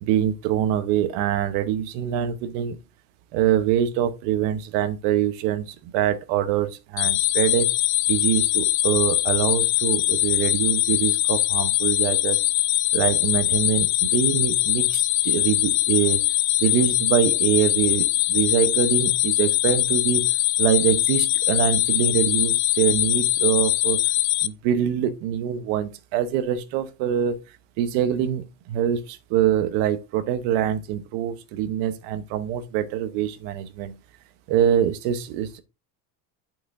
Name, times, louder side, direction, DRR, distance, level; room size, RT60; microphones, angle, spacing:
voice 1, 0.0-2.8 3.3-7.7 8.1-12.4 12.9-16.2 16.6-20.3 20.6-24.0 24.4-27.4 27.8-33.9 34.5-35.6, right 10 dB, 90° right, 1.1 m, -24 dB
sound 1, 7.0-24.5, left 17 dB, 65° left, 0.6 m, -22 dB
8.8 x 6.1 x 2.7 m
cardioid pair, 140°, 41 cm